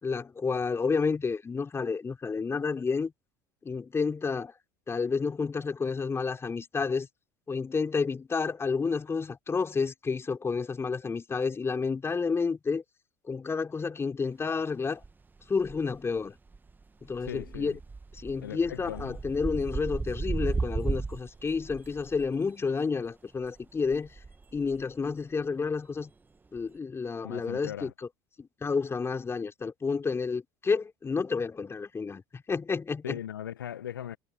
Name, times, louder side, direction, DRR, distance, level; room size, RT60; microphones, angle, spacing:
voice 1, 0.0-3.1 3.6-4.5 4.9-7.1 7.5-12.8 13.3-15.0 15.5-16.3 17.0-17.8 18.2-24.1 24.5-26.1 26.5-27.9 28.4-33.2, left 5 dB, 25° left, 3.5 m, -30 dB
sound 1, 15.0-15.1 15.4-16.2 16.5-22.4 23.4-25.0 26.6-26.7, right 4 dB, 15° right, 1.6 m, -35 dB
voice 2, 17.2-17.8 18.4-19.2 27.2-27.9 33.0-34.2, left 10 dB, 85° left, 1.2 m, -39 dB
hypercardioid pair, 75°, 11 cm